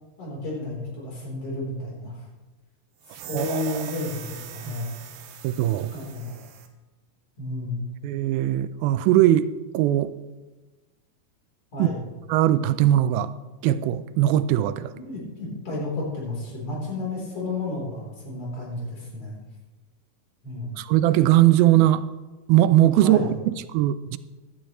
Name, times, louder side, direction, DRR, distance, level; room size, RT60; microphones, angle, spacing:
voice 1, 0.2-2.2 3.1-4.9 5.9-6.4 7.4-7.8 11.7-12.0 14.9-19.4 20.4-20.7 23.0-23.3, left 2 dB, 40° left, -4 dB, 4.4 m, -32 dB
sound 1, 3.0-6.7, right 9 dB, 75° right, 2.5 m, -41 dB
voice 2, 3.3-3.9 4.7-4.8 5.4-5.9 8.0-10.2 11.8-11.9 12.3-13.3 13.6-14.9 20.8-22.1 22.5-24.2, right 13 dB, 90° right, 14 dB, 2.4 m, -20 dB
16.0 x 11.5 x 3.1 m, 1.2 s
omnidirectional pair, 4.2 m